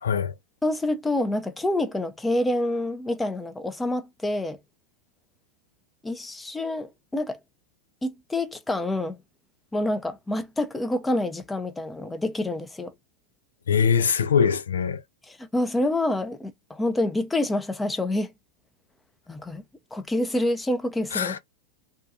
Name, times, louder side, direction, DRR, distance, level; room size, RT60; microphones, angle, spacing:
voice 1, 0.0-0.3 13.7-15.0 21.1-21.4, left 7 dB, 85° left, 0.4 m, -22 dB
voice 2, 0.6-4.6 6.0-7.4 8.0-9.2 9.7-12.9 15.3-18.3 19.3-19.6 19.9-21.4, left 1 dB, 10° left, 0.5 m, -27 dB
2.7 x 2.3 x 2.4 m
hypercardioid pair, 100°, 0 cm